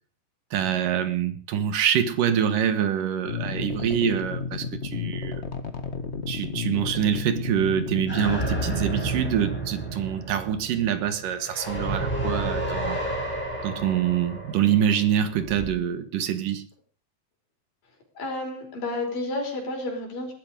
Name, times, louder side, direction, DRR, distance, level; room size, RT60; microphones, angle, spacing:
voice 1, 0.5-5.4 6.3-13.1 13.6-16.7, right 9 dB, 70° right, 3.0 m, -25 dB
sound 1, 3.2-8.8, left 5 dB, 40° left, 0.9 m, -32 dB
sound 2, 8.1-15.7, right 1 dB, 5° left, 6.2 m, -31 dB
voice 2, 18.1-20.3, left 2 dB, 75° left, 6.7 m, -31 dB
20.0 x 12.0 x 5.1 m
omnidirectional pair, 4.0 m